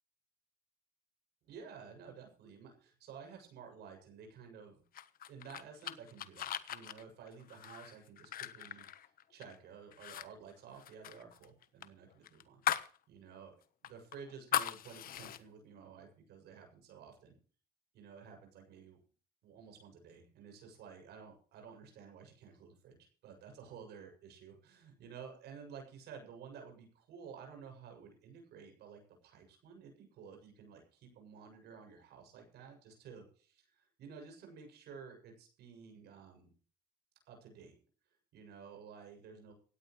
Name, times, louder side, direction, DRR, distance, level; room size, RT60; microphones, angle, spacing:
voice 1, 1.4-4.8 5.3-13.6 13.8-17.4 17.9-19.0 19.4-36.5 37.3-37.7 38.3-39.5, right 6 dB, 75° right, 3 dB, 7.1 m, -53 dB
sound 1, 4.9-9.6 9.9-10.3 10.5-13.0 13.3-13.4 13.8-15.4, left 11 dB, 60° left, 1.2 m, -39 dB
17.5 x 17.0 x 3.2 m, 0.41 s
cardioid pair, 110°, 17 cm